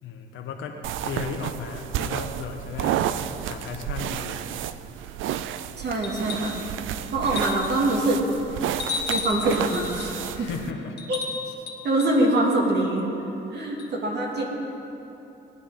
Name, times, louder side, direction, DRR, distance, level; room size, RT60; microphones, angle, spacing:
voice 1, 0.0-3.1 3.4-4.5 10.4-11.0, left 6 dB, 80° left, 3 dB, 1.3 m, -35 dB
sound 1, 0.8-10.7, right 11 dB, 80° right, 0.5 m, -31 dB
voice 2, 5.8-6.6 7.1-8.3 9.1-10.5 11.1-11.2 11.8-13.1 13.5-14.5, right 2 dB, 60° right, -1 dB, 2.4 m, -24 dB
sound 2, 6.0-6.6 7.3-7.9 8.8-10.2 11.0-12.2 13.8-13.9, left 5 dB, 60° left, 1.3 m, -33 dB
19.0 x 9.9 x 3.8 m, 3.0 s
cardioid pair, 90°, 20 cm